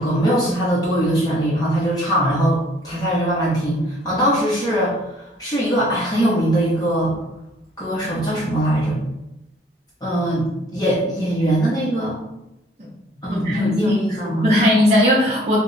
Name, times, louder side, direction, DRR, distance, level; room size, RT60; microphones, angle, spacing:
voice 1, 0.0-7.2 7.8-9.0 10.0-12.2 13.2-14.5, right 1 dB, 20° left, -7 dB, 0.7 m, -21 dB
voice 2, 13.3-13.9 14.2-15.6, left 1 dB, 35° right, -7 dB, 0.6 m, -18 dB
3.0 x 2.1 x 3.7 m, 0.89 s
head